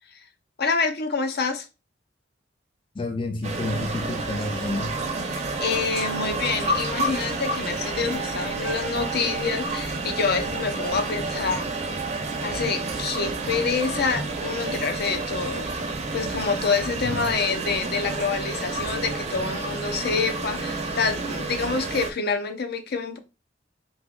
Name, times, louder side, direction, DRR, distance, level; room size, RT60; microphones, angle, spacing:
voice 1, 0.6-1.7 5.3-11.7 12.4-15.7 16.1-23.2, left 5 dB, 55° left, 0.7 m, -27 dB
voice 2, 3.0-5.0 17.0-17.3, left 2 dB, 25° left, 0.4 m, -30 dB
sound 1, 3.4-22.1, right 3 dB, 35° right, 0.7 m, -30 dB
3.6 x 2.9 x 3.7 m
head